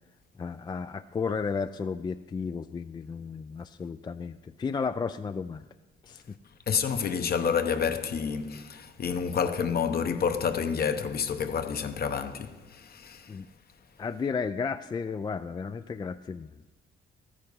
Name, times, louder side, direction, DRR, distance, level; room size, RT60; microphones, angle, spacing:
voice 1, 0.4-5.6 6.0-6.4 13.3-13.5 14.0-16.5, left 5 dB, 20° left, 0.3 m, -33 dB
voice 2, 6.7-13.4, left 6 dB, 50° left, 0.9 m, -29 dB
13.5 x 9.9 x 5.4 m
cardioid pair, 90°, 20 cm